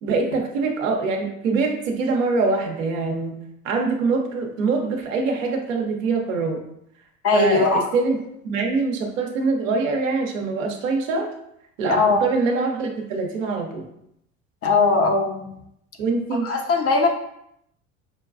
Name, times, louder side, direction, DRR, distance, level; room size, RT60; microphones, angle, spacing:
voice 1, 0.0-3.4 3.6-6.6 7.3-8.2 8.4-11.3 11.8-13.8 16.0-16.5, right 4 dB, 80° right, 1 dB, 0.8 m, -24 dB
voice 2, 7.2-7.9 11.9-12.2 14.6-15.5 16.4-17.1, left 4 dB, 40° left, 4 dB, 0.7 m, -19 dB
5.6 x 2.3 x 2.4 m, 0.76 s
hypercardioid pair, 75°, 38 cm